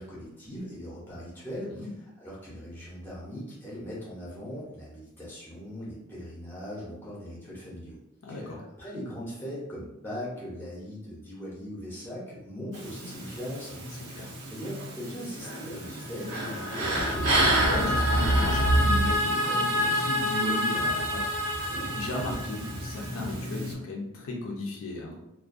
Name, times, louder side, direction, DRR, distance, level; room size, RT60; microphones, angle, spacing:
voice 1, 0.0-1.9 2.2-8.0 8.3-13.8 14.5-17.3, equal, 10° left, -6 dB, 0.6 m, -39 dB
voice 2, 8.2-8.6 14.1-14.3 17.6-25.2, left 2 dB, 65° left, -1 dB, 0.5 m, -35 dB
sound 1, 12.7-23.7, right 1 dB, 90° right, 0.7 m, -30 dB
sound 2, 16.1-23.2, left 1 dB, 50° right, 0.4 m, -29 dB
2.3 x 2.1 x 2.5 m, 0.89 s
head